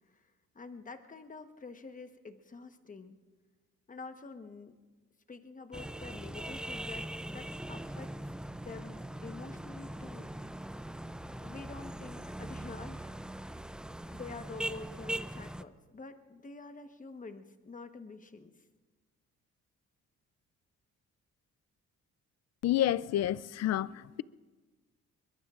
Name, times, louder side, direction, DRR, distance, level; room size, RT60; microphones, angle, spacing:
voice 1, 0.5-3.2 3.9-4.7 5.3-8.1 8.6-10.3 11.4-13.7 14.1-18.5, left 3 dB, 25° left, 1.2 m, -47 dB
sound 1, 5.7-15.6, right 1 dB, 5° right, 0.4 m, -41 dB
voice 2, 22.6-24.2, left 12 dB, 60° left, 0.5 m, -29 dB
23.0 x 22.0 x 2.5 m
cardioid pair, 90°, 30 cm